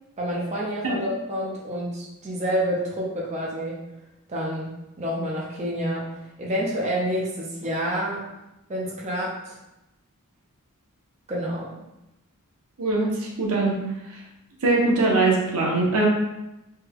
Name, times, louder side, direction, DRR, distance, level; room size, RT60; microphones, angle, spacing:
voice 1, 0.2-3.8 4.3-8.2 8.7-9.6 11.3-11.8, equal, 30° right, -4 dB, 0.5 m, -28 dB
voice 2, 12.8-13.1 13.4-13.7 14.6-16.1, right 2 dB, 70° right, -2 dB, 0.7 m, -21 dB
3.2 x 2.2 x 3.4 m, 0.92 s
head